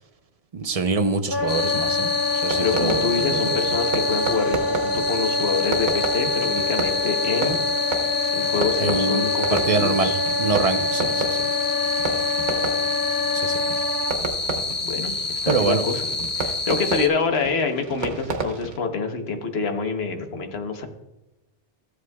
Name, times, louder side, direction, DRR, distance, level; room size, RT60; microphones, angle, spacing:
voice 1, 0.5-2.1 2.4-3.4 8.8-9.2 9.5-10.1 10.4-11.4 13.3-13.6 15.5-15.8, right 4 dB, 40° right, 7 dB, 0.6 m, -24 dB
Wind instrument woodwind instrument, 1.3-14.1, left 3 dB, 25° right, 1.5 m, -26 dB
sound 1, 1.5-17.1, left 3 dB, 35° left, 1.0 m, -28 dB
Fireworks, 2.3-18.8, right 4 dB, 90° right, 1.4 m, -32 dB
voice 2, 2.6-7.6 8.3-10.2 10.7-10.8 14.8-16.0 16.4-20.9, left 4 dB, 65° left, 5 dB, 1.3 m, -26 dB
14.5 x 8.0 x 2.3 m, 0.98 s
omnidirectional pair, 1.2 m